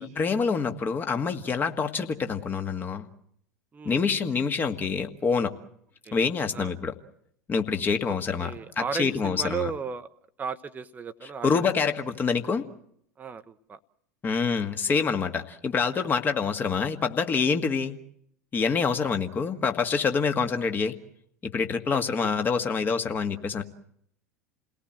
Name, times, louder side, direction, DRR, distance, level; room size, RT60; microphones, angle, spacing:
voice 1, 0.0-3.1 3.9-5.5 6.1-6.9 7.5-8.5 8.8-9.7 11.2-12.7 14.2-18.0 18.5-20.9 21.4-23.6, left 5 dB, 20° left, 7 dB, 1.8 m, -26 dB
voice 2, 8.1-10.1 10.4-11.9 13.2-13.8 14.9-15.0 18.8-19.0 21.9-22.3, right 5 dB, 20° right, 10 dB, 1.0 m, -35 dB
29.0 x 18.5 x 7.6 m, 0.72 s
figure-of-eight pair, 80°, 9 cm